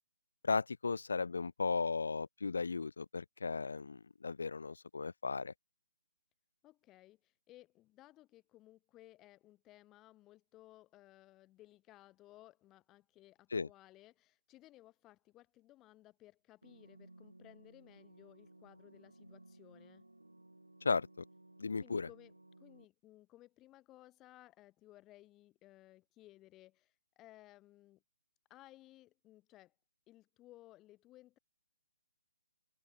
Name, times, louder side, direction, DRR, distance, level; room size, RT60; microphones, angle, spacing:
voice 1, 0.4-5.5 13.5-13.7 20.8-21.2 21.6-22.1, left 4 dB, 60° left, 0.3 m, -36 dB
voice 2, 6.6-20.1 21.8-22.3 22.6-28.0 28.5-29.7 30.1-31.4, left 16 dB, 15° left, 2.1 m, -60 dB
sound 1, 16.6-22.8, right 2 dB, 80° right, 1.4 m, -60 dB
open air
figure-of-eight pair, 135°, 0 cm